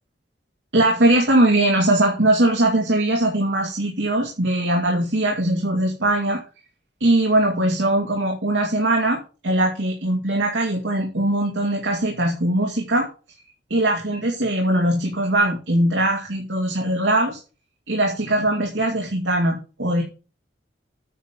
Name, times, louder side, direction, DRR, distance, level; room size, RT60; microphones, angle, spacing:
voice 1, 0.7-6.4 7.0-13.1 13.7-17.4 17.9-20.0, right 1 dB, 85° right, 0 dB, 2.3 m, -20 dB
9.3 x 5.4 x 7.5 m, 0.33 s
head